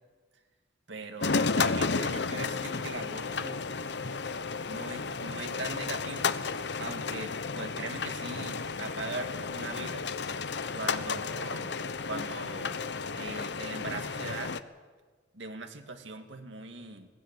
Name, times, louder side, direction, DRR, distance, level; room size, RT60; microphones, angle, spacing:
voice 1, 0.9-3.7 4.7-6.4 6.8-10.1 10.7-11.8 12.1-12.8 13.1-14.5 15.3-17.1, right 3 dB, 70° right, 5 dB, 2.0 m, -40 dB
sound 1, 1.2-14.6, left 4 dB, 60° left, 0.8 m, -33 dB
20.5 x 16.0 x 8.9 m, 1.4 s
head